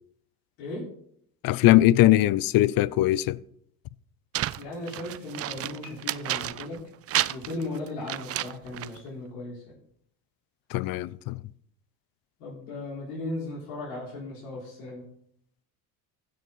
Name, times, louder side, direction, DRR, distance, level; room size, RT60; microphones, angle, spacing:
voice 1, 1.4-3.4 10.7-11.4, left 15 dB, 50° left, 0.5 m, -21 dB
sound 1, 4.3-6.8 7.1-9.0, right 13 dB, 30° right, 0.4 m, -31 dB
voice 2, 4.6-6.8 7.3-9.7 12.4-15.0, left 2 dB, 75° left, 4.3 m, -36 dB
15.5 x 6.5 x 4.0 m
hypercardioid pair, 70°, 47 cm